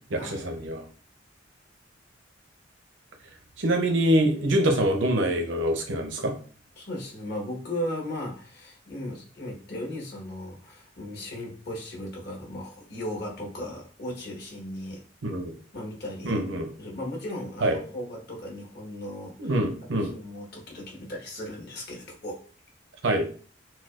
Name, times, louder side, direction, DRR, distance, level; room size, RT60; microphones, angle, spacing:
voice 1, 0.1-0.8 3.6-6.3 15.2-15.5 16.2-16.7 17.6-17.8 19.4-20.1 23.0-23.3, right 1 dB, 70° right, 4 dB, 0.7 m, -25 dB
voice 2, 6.8-15.0 15.7-16.4 16.8-19.6 20.0-22.4, left 1 dB, 55° left, -2 dB, 1.4 m, -36 dB
6.0 x 2.3 x 2.5 m, 0.41 s
head